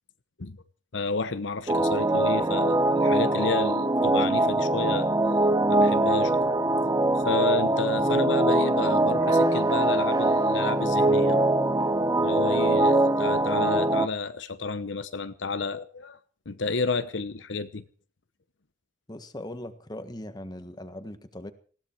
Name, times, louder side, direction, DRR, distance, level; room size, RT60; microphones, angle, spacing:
voice 1, 0.9-5.1 5.7-6.4 7.2-11.5 12.2-16.2 16.5-17.8, left 4 dB, 80° left, 12 dB, 1.0 m, -31 dB
sound 1, 1.7-14.1, right 2 dB, 20° right, 0.7 m, -23 dB
voice 2, 19.1-21.5, left 1 dB, 20° left, 9 dB, 1.5 m, -39 dB
19.5 x 16.0 x 4.6 m, 0.42 s
head